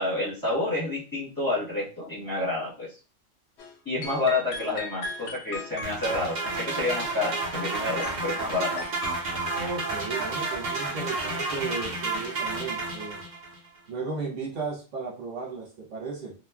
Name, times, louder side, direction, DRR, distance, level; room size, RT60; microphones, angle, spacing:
voice 1, 0.0-2.9 3.8-8.9, left 2 dB, 15° left, -8 dB, 1.1 m, -29 dB
sound 1, 3.6-3.8 4.0-7.7 8.0-9.1, left 3 dB, 65° left, 0.8 m, -39 dB
sound 2, 5.8-13.6, right 3 dB, 45° right, 0.6 m, -31 dB
voice 2, 9.5-13.2 13.9-16.3, right 4 dB, 70° right, -3 dB, 1.2 m, -35 dB
2.9 x 2.2 x 2.3 m, 0.34 s
omnidirectional pair, 1.3 m